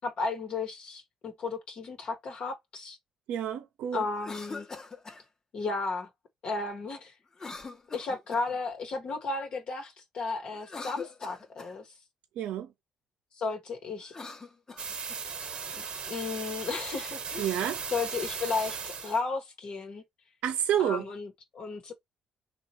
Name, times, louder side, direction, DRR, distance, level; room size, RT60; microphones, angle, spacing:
voice 1, 0.0-3.0 3.9-4.7 5.5-6.1 6.4-7.1 7.9-11.9 13.4-14.1 15.8-17.6 17.9-20.0 20.8-21.9, left 4 dB, 55° left, 1.1 m, -34 dB
voice 2, 3.3-4.0 12.4-12.7 17.4-17.8 20.4-21.1, right 10 dB, 75° right, 0.7 m, -29 dB
Cough, 4.1-5.2 7.3-8.6 10.5-11.8 14.0-15.2, left 4 dB, 30° left, 1.0 m, -43 dB
sound 1, 14.8-19.2, right 5 dB, 50° right, 1.0 m, -37 dB
2.9 x 2.4 x 4.2 m
supercardioid pair, 75°, 2 cm